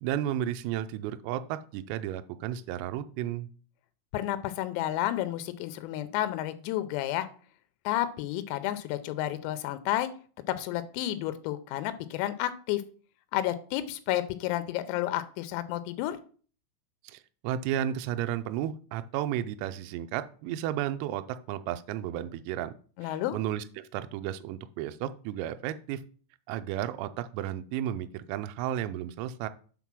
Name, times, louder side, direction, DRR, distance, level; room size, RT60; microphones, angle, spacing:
voice 1, 0.0-3.5 17.0-22.7 23.0-26.0 26.5-29.5, right 11 dB, 90° right, 10 dB, 3.3 m, -33 dB
voice 2, 4.1-7.3 7.9-10.1 10.5-12.8 13.3-16.2 23.0-23.4, left 13 dB, 85° left, 11 dB, 3.4 m, -31 dB
8.3 x 3.9 x 6.0 m, 0.42 s
omnidirectional pair, 6.0 m